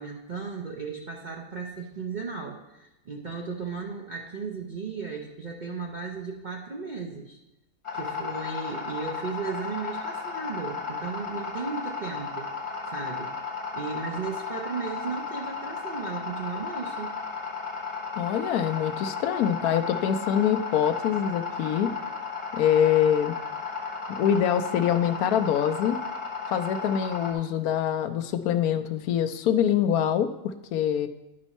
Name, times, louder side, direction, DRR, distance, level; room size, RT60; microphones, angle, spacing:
voice 1, 0.0-7.4 7.9-12.5 12.9-13.3 13.7-17.1, right 5 dB, 55° right, 0 dB, 0.5 m, -35 dB
sound 1, 7.8-27.3, left 5 dB, 25° left, 0.9 m, -34 dB
voice 2, 18.2-21.9 22.5-23.3 24.1-26.0 26.5-31.1, left 9 dB, 80° left, 9 dB, 1.0 m, -24 dB
11.0 x 5.3 x 4.1 m, 0.94 s
omnidirectional pair, 1.6 m